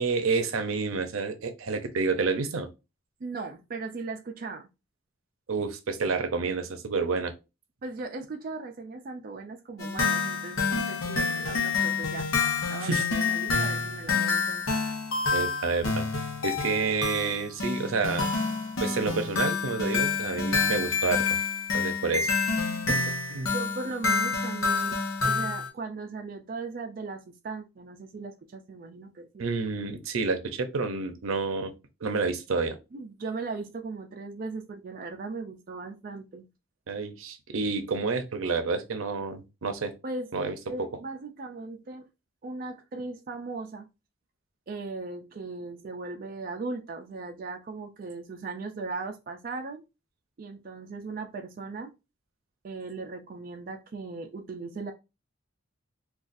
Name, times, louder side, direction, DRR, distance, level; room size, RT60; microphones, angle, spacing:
voice 1, 0.0-2.7 5.5-7.3 12.8-13.0 15.3-16.0 16.4-18.3 18.8-21.4 21.7-22.3 22.9-23.0 23.3-23.5 29.4-31.7 32.0-32.8 36.9-39.9 40.3-40.5, right 4 dB, 85° right, 0.6 m, -29 dB
voice 2, 3.2-4.7 7.8-12.3 12.7-14.7 23.5-29.5 32.9-36.5 40.0-40.3 40.7-42.1 42.4-43.9 44.7-49.8 50.4-51.9 52.6-54.9, right 3 dB, 45° right, 0.3 m, -38 dB
sound 1, 9.8-25.7, left 4 dB, 85° left, 0.8 m, -28 dB
3.9 x 2.3 x 2.5 m
head